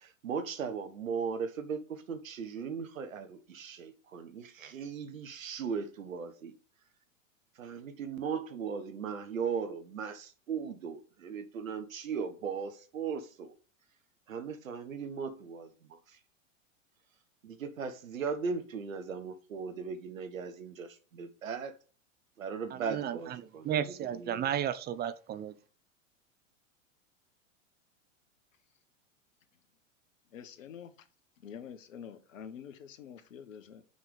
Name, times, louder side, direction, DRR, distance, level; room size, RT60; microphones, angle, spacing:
voice 1, 0.0-6.5 7.6-13.5 14.3-16.0 17.4-21.7 22.4-23.7 24.0-24.5, right 6 dB, 80° right, 1.5 m, -38 dB
voice 2, 22.7-25.5, right 9 dB, 25° right, 0.7 m, -34 dB
voice 3, 30.3-30.9 31.4-33.8, left 8 dB, 75° left, 1.5 m, -47 dB
6.0 x 5.7 x 6.6 m
hypercardioid pair, 105°, 39 cm